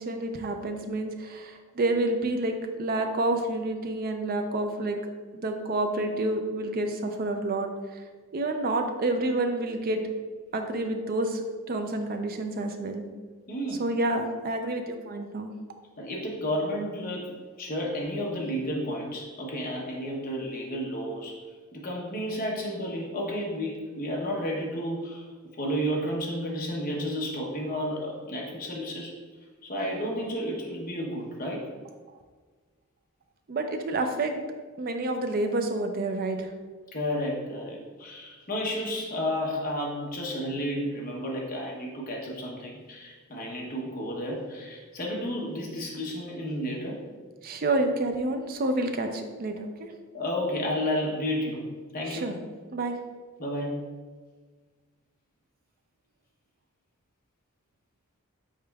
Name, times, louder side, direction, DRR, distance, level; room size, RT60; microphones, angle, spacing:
voice 1, 0.0-5.0 5.3-7.7 8.3-10.0 10.5-11.4 11.7-13.0 13.8-15.5 33.5-34.4 34.8-36.5 47.4-49.9 52.1-52.3 52.7-53.0, right 2 dB, 40° right, 5 dB, 0.4 m, -29 dB
voice 2, 13.5-13.9 16.0-21.4 21.7-25.2 25.5-29.1 29.6-31.7 36.9-47.0 50.1-51.7 51.9-52.3 53.4-53.8, equal, 40° left, -2 dB, 0.8 m, -32 dB
5.0 x 4.2 x 2.3 m, 1.4 s
head